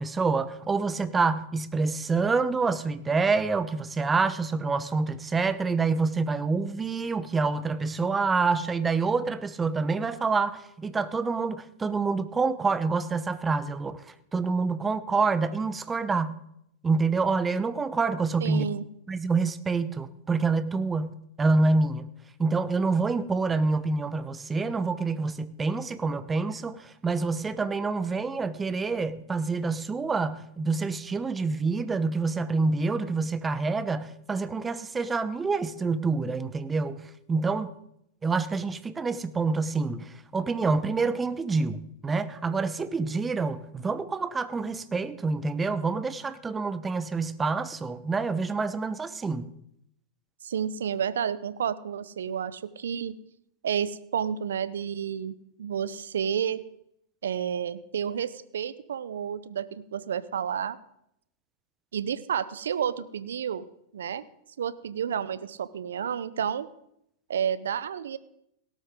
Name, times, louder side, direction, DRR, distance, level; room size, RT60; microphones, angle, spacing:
voice 1, 0.0-16.4 16.8-18.7 19.1-22.1 22.4-37.7 38.2-49.5, right 4 dB, 15° right, 0.9 m, -27 dB
voice 2, 18.4-18.8 50.4-53.2 53.6-56.6 57.2-60.8 61.9-63.7 63.9-64.2 64.6-66.7 67.3-68.2, right 8 dB, 75° right, 0.7 m, -30 dB
17.5 x 13.0 x 3.7 m
hypercardioid pair, 100°, 0 cm